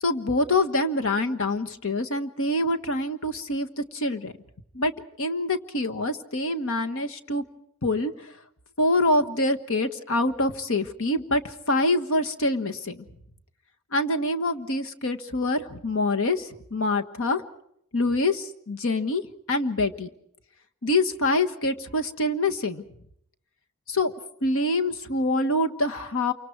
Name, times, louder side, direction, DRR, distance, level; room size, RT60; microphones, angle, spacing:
voice 1, 0.0-4.3 4.7-4.9 5.2-7.4 7.8-8.3 8.8-13.0 13.9-17.4 17.9-19.2 19.5-20.1 20.8-22.8 23.9-24.1 24.4-26.3, left 2 dB, 65° left, 7 dB, 1.4 m, -25 dB
28.0 x 25.0 x 4.7 m, 0.71 s
head